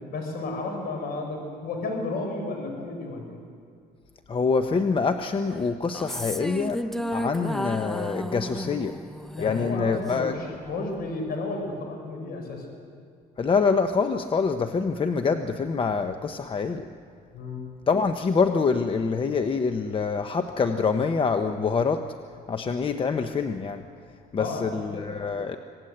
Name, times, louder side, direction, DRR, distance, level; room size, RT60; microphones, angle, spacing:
voice 1, 0.1-3.4 9.4-12.6 17.3-17.7 24.4-24.9, left 3 dB, 65° left, 3 dB, 5.5 m, -32 dB
voice 2, 4.3-6.8 7.1-9.0 9.4-10.6 13.4-16.9 17.9-22.1 22.5-23.8 24.3-25.6, left 5 dB, 30° left, 7 dB, 0.9 m, -25 dB
sound 1, 5.8-10.3, equal, ahead, 0.8 m, -33 dB
26.0 x 18.0 x 7.9 m, 2.3 s
cardioid pair, 110°, 17 cm